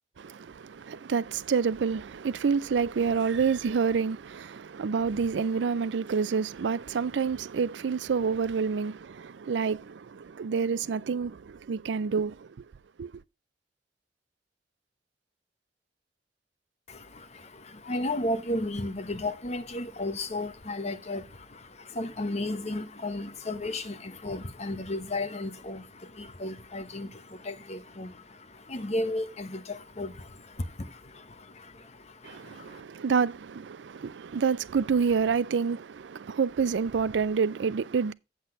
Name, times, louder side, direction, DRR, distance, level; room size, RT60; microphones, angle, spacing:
voice 1, 0.2-12.5 13.0-13.1 32.2-38.1, right 5 dB, 85° right, 0.4 m, -28 dB
voice 2, 16.9-32.8, left 1 dB, 40° left, 1.0 m, -34 dB
8.1 x 7.9 x 3.8 m
head